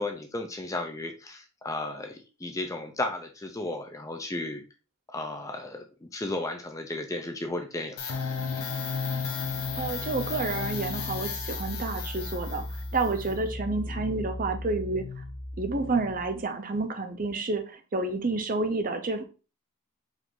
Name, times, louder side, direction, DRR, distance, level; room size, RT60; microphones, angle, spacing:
voice 1, 0.0-4.6 5.1-8.2 13.9-14.0, left 2 dB, 15° left, 4 dB, 0.4 m, -34 dB
sound 1, 8.0-16.4, left 4 dB, 75° left, 0.8 m, -34 dB
voice 2, 9.8-12.6 12.9-15.0 15.6-19.2, right 3 dB, 40° right, 6 dB, 0.6 m, -29 dB
4.8 x 2.6 x 3.7 m, 0.33 s
head